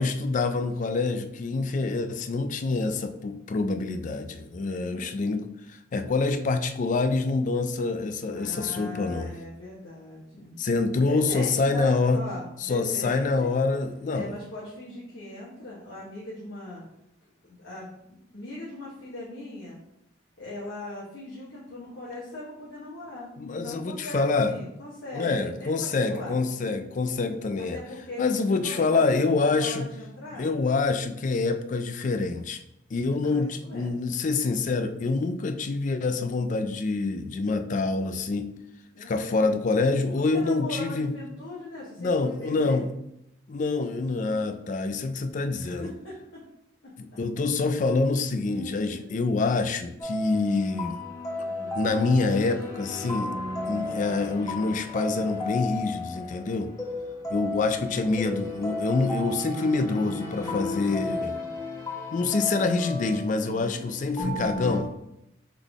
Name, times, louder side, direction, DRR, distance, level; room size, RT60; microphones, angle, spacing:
voice 1, 0.0-5.5 5.9-9.3 10.6-12.2 12.6-14.4 23.4-24.6 25.1-27.8 28.2-29.9 30.4-32.6 32.9-38.5 39.1-41.1 42.0-42.9 43.5-45.9 47.0-51.0 51.7-53.3 53.7-56.7 57.3-61.4 62.1-64.9, left 3 dB, 40° left, 9 dB, 0.3 m, -26 dB
voice 2, 1.6-1.9 4.6-5.3 8.3-10.6 11.0-13.5 14.1-16.8 17.4-17.9 18.3-19.8 20.4-26.4 27.6-30.5 33.1-34.0 38.9-39.8 40.1-42.8 45.5-46.4 48.4-49.1 51.4-51.8 60.4-61.4 63.4-63.8, left 2 dB, 70° left, -7 dB, 1.1 m, -40 dB
sound 1, 50.0-64.8, left 2 dB, 20° left, 0.9 m, -34 dB
3.7 x 3.7 x 3.5 m, 0.81 s
head